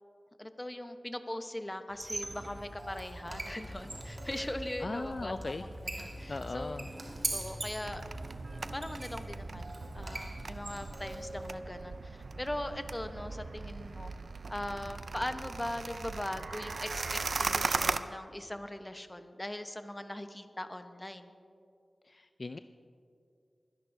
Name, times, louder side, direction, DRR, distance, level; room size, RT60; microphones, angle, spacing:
voice 1, 0.4-5.5 6.0-6.8 7.3-8.0 8.7-14.1 14.5-21.3, left 1 dB, 20° left, 8 dB, 1.0 m, -40 dB
Squeak, 1.9-11.5, right 2 dB, 55° right, 1.6 m, -43 dB
Motorcycle / Engine starting, 2.0-10.9, equal, 35° right, 1.9 m, -47 dB
voice 2, 4.8-5.7 5.9-6.9 22.0-22.6, left 3 dB, 55° left, 10 dB, 0.3 m, -39 dB
sound 1, 7.8-18.0, right 4 dB, 70° right, 0.4 m, -38 dB
24.5 x 11.0 x 2.7 m, 2.4 s
cardioid pair, 40°, 0 cm